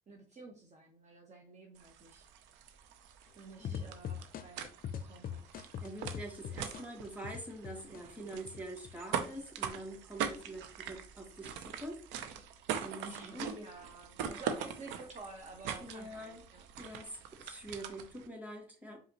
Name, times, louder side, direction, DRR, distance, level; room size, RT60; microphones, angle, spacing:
voice 1, 0.1-2.3 3.4-4.7 5.0-5.4 13.0-16.7, right 3 dB, 40° right, 0 dB, 1.0 m, -50 dB
sound 1, 1.8-18.3, right 7 dB, 90° right, 0.5 m, -43 dB
sound 2, 3.6-8.0 8.4-9.2, left 8 dB, 55° left, 0.5 m, -41 dB
voice 2, 5.5-12.0 12.8-13.5 15.8-16.4 16.8-19.0, right 1 dB, 10° right, 0 dB, 2.1 m, -45 dB
4.8 x 2.9 x 2.9 m, 0.40 s
supercardioid pair, 60°, 18 cm